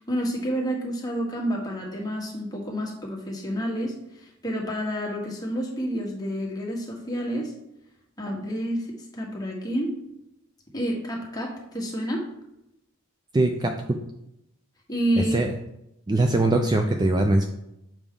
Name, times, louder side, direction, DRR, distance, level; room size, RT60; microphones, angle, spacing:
voice 1, 0.0-7.5 8.2-10.0 10.7-12.3 14.9-15.4, equal, 20° left, -2 dB, 1.3 m, -29 dB
voice 2, 13.3-14.0 15.1-15.5 16.1-17.4, right 2 dB, 20° right, 4 dB, 0.4 m, -22 dB
7.0 x 4.7 x 3.7 m, 0.85 s
head